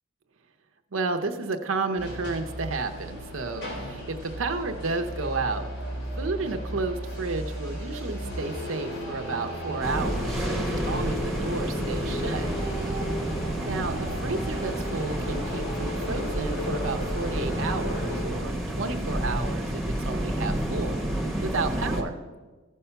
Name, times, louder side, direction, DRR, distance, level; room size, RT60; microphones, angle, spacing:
voice 1, 0.9-5.7 6.2-12.5 13.7-21.0 21.4-22.2, right 3 dB, 85° right, 6 dB, 0.7 m, -32 dB
sound 1, 2.0-18.2, equal, 55° left, 3.8 m, -35 dB
sound 2, 9.8-22.0, right 1 dB, ahead, 1.2 m, -30 dB
15.5 x 5.5 x 5.7 m, 1.3 s
head